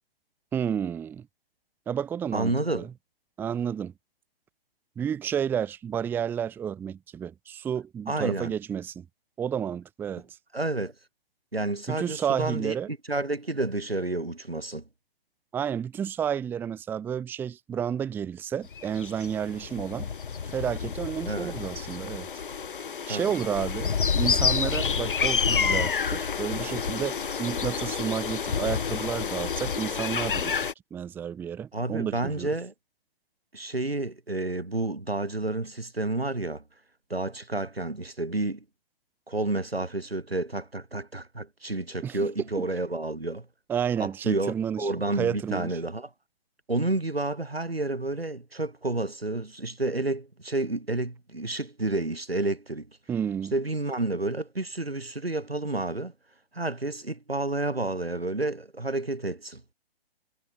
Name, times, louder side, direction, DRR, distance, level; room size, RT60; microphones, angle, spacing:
voice 1, 0.5-1.3 1.9-2.9 3.4-3.9 5.0-9.0 9.4-10.4 11.9-12.9 15.5-20.1 20.5-22.3 23.1-30.6 30.9-32.5 42.0-42.2 43.7-44.9 45.2-45.7 53.1-53.5, right 8 dB, 5° right, 0.8 m, -31 dB
voice 2, 2.3-2.9 8.1-8.5 10.5-10.9 11.5-12.7 13.1-14.8 21.2-21.5 23.1-23.3 31.7-32.7 33.5-36.6 37.1-38.6 39.3-43.5 44.0-46.1 46.7-52.9 53.5-56.1 56.5-59.6, right 2 dB, 85° right, 2.6 m, -30 dB
sound 1, 18.7-30.7, left 6 dB, 60° left, 4.5 m, -29 dB
figure-of-eight pair, 130°, 30 cm